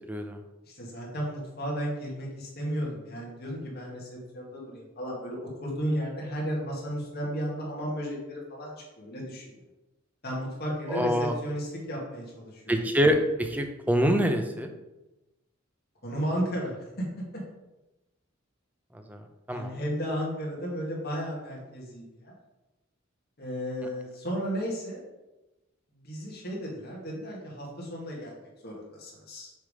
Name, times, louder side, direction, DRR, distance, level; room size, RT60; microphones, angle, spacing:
voice 1, 0.7-9.5 10.2-12.8 16.0-17.1 19.5-22.3 23.4-25.0 25.9-29.5, equal, 50° left, -3 dB, 2.1 m, -34 dB
voice 2, 10.9-11.3 12.7-14.7 19.1-19.2 19.5-19.8, equal, 10° right, 5 dB, 0.6 m, -25 dB
6.5 x 3.6 x 4.9 m, 1.0 s
head